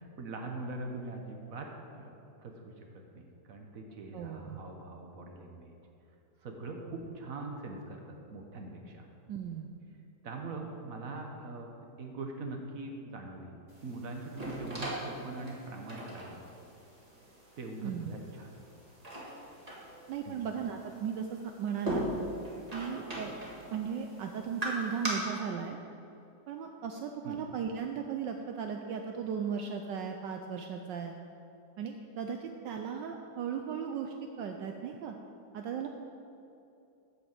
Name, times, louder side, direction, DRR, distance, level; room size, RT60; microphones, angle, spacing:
voice 1, 0.2-1.7 1.9-2.1 2.4-2.9 3.1-5.8 6.4-9.1 10.2-11.7 12.0-13.5 13.8-16.4 17.6-18.5 20.2-20.4 27.2-27.4, right 2 dB, 50° right, 2 dB, 1.3 m, -42 dB
voice 2, 4.1-4.6 9.3-9.7 17.8-18.1 20.1-22.0 22.7-23.4 23.7-25.8 26.5-31.1 31.8-35.2 35.5-35.9, right 7 dB, 75° right, 4 dB, 1.2 m, -36 dB
sound 1, 13.7-25.1, right 1 dB, 20° right, 1.7 m, -41 dB
8.5 x 6.1 x 7.3 m, 2.7 s
omnidirectional pair, 2.1 m